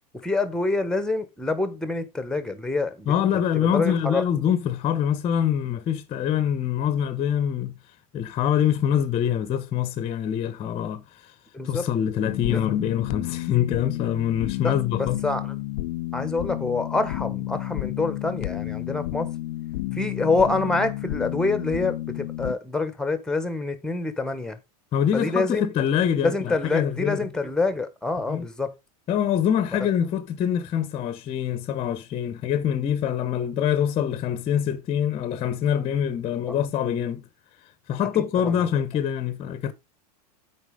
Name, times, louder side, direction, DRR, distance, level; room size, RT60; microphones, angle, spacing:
voice 1, 0.2-4.3 11.5-11.9 12.5-12.6 14.6-15.6 16.1-19.3 19.9-24.6 25.1-25.7 26.2-28.7 36.5-36.6 38.0-38.1 38.4-38.6, left 3 dB, 5° left, 1.1 m, -26 dB
voice 2, 3.1-7.7 8.1-11.0 11.6-15.2 24.9-27.3 28.3-28.5 29.1-37.3 37.9-39.7, left 9 dB, 30° left, 0.9 m, -25 dB
sound 1, 12.2-22.5, left 16 dB, 70° left, 0.6 m, -31 dB
8.2 x 4.7 x 5.1 m
supercardioid pair, 125°, 21 cm